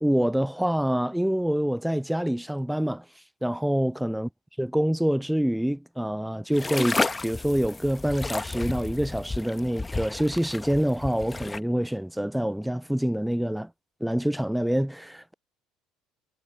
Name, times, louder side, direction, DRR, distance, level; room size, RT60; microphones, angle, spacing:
voice 1, 0.0-3.0 3.4-4.3 4.6-13.7 14.0-15.3, equal, 5° right, 0.3 m, -26 dB
sound 1, 6.5-11.6, left 3 dB, 20° left, 1.2 m, -32 dB
hypercardioid pair, 60°, 0 cm